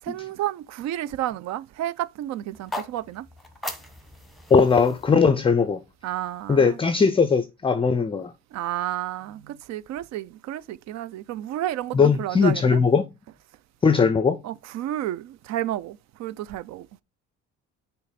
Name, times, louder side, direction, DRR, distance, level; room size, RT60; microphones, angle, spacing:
voice 1, 0.0-3.3 6.0-6.8 8.5-12.8 14.4-16.9, right 13 dB, 65° right, 0.5 m, -31 dB
sound 1, 2.5-6.6, left 2 dB, ahead, 1.2 m, -39 dB
voice 2, 4.5-5.8 6.5-8.3 11.9-13.1 13.8-14.4, left 5 dB, 20° left, 0.5 m, -19 dB
6.4 x 3.1 x 5.0 m
cardioid pair, 110°, 30 cm